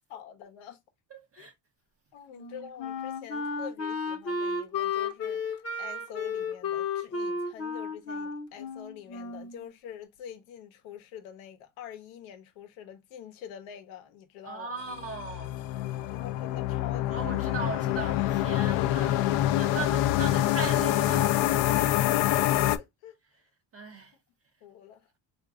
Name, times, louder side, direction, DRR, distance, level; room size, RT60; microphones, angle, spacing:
voice 1, 0.1-0.8 1.4-1.5 2.1-14.8 16.1-17.7 18.2-20.0 21.8-23.2 24.6-25.1, left 9 dB, 85° left, 0.9 m, -46 dB
voice 2, 1.1-1.5 14.4-15.5 17.1-19.2 19.6-21.4 23.7-24.1, right 4 dB, 30° right, 0.5 m, -38 dB
Wind instrument woodwind instrument, 2.3-9.6, left 4 dB, 30° left, 0.7 m, -33 dB
sound 1, 14.9-22.8, left 14 dB, 65° left, 0.5 m, -26 dB
3.8 x 2.6 x 2.2 m
cardioid pair, 95°, 47 cm